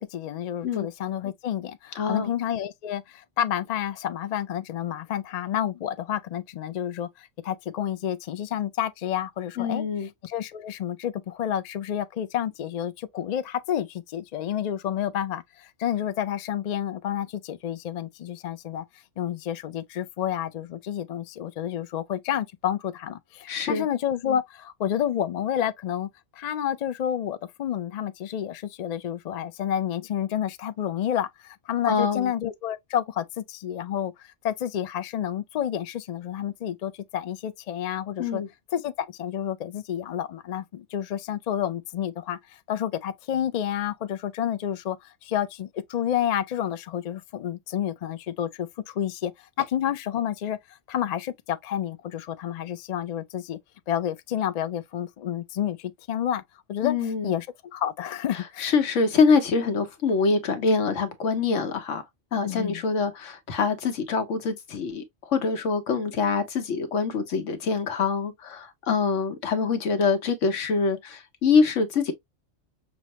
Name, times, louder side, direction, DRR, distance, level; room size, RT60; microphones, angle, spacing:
voice 1, 0.0-9.8 10.2-18.8 19.2-38.4 38.7-50.6 50.9-53.6 53.9-56.4 56.7-56.9 57.2-57.5 57.7-58.7 62.4-62.8, left 10 dB, 65° left, 0.4 m, -30 dB
voice 2, 2.0-2.3 9.6-10.1 23.5-23.9 31.9-32.3 38.2-38.5 56.8-57.3 58.6-62.0 62.3-72.1, left 5 dB, 90° left, 1.2 m, -25 dB
6.1 x 2.1 x 2.8 m
omnidirectional pair, 1.2 m